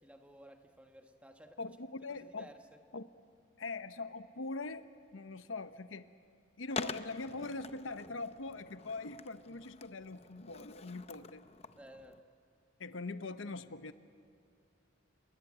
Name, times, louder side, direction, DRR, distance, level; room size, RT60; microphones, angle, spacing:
voice 1, 0.0-1.8 2.1-2.8 11.7-12.2, equal, 5° right, 5 dB, 1.3 m, -56 dB
voice 2, 1.6-2.5 2.9-3.1 3.6-6.1 6.6-11.4 12.8-13.9, left 3 dB, 80° left, 11 dB, 0.9 m, -42 dB
Skateboard, 6.7-12.2, left 4 dB, 30° left, 0.7 m, -46 dB
28.5 x 22.5 x 8.8 m, 2.4 s
head